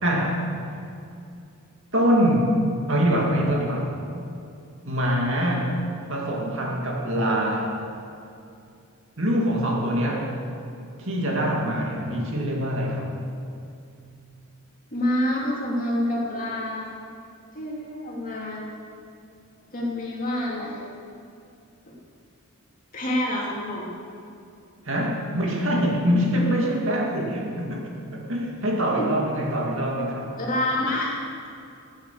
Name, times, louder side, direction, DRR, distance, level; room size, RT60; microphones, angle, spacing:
voice 1, 0.0-0.5 1.9-2.6 2.9-3.9 4.8-5.7 6.1-7.8 9.2-10.3 11.0-13.1 24.9-30.3, equal, 60° right, -1 dB, 2.3 m, -24 dB
voice 2, 14.9-16.9 17.5-18.6 19.7-20.8 21.9-22.0 22.9-23.8 29.0-29.1 30.4-31.1, left 1 dB, 40° left, -4 dB, 3.0 m, -27 dB
16.0 x 8.8 x 7.0 m, 2.6 s
head